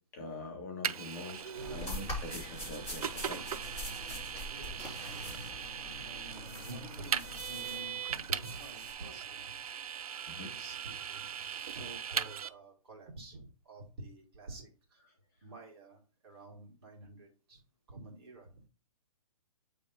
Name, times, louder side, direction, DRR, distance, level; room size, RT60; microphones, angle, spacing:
voice 1, 0.1-1.4 1.7-3.5 10.3-10.5, left 2 dB, 30° left, 0 dB, 1.5 m, -44 dB
Vehicle, 0.8-12.5, right 8 dB, 70° right, 0.5 m, -39 dB
sound 1, 1.3-8.9, left 1 dB, 10° left, 2.4 m, -44 dB
voice 2, 1.5-2.2 3.6-4.0 4.5-5.3 6.0-9.6 10.3-15.0 15.4-17.6 17.9-18.6, right 2 dB, 40° right, 0 dB, 1.9 m, -49 dB
8.3 x 3.5 x 3.9 m, 0.36 s
hypercardioid pair, 175°, 19 cm